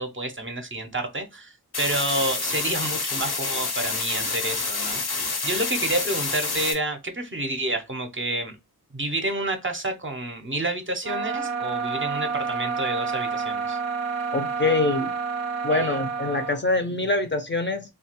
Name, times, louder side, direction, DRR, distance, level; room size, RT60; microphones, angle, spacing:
voice 1, 0.0-5.0 5.4-8.6 8.9-13.8 15.7-16.0, right 1 dB, 35° right, 0.6 m, -29 dB
sound 1, 1.7-6.7, left 3 dB, 80° left, 0.9 m, -28 dB
sound 2, 11.0-16.6, right 5 dB, 85° right, 0.5 m, -29 dB
voice 2, 14.3-15.1 15.6-17.8, left 2 dB, 30° left, 0.5 m, -24 dB
2.8 x 2.3 x 2.8 m
wide cardioid pair, 50°, 38 cm